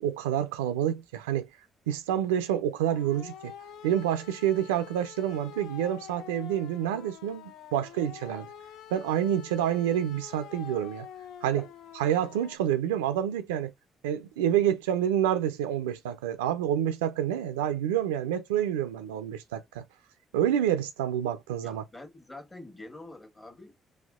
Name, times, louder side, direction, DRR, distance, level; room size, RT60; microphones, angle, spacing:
voice 1, 0.0-1.5 1.9-3.5 3.8-8.5 8.9-11.1 11.4-11.6 11.9-13.7 14.0-19.8 20.3-21.8, right 10 dB, 90° right, 0.3 m, -28 dB
sound 1, 2.8-12.6, left 9 dB, 75° left, 0.3 m, -47 dB
voice 2, 21.6-23.7, left 2 dB, 25° left, 1.3 m, -46 dB
4.1 x 2.3 x 2.3 m
hypercardioid pair, 50°, 0 cm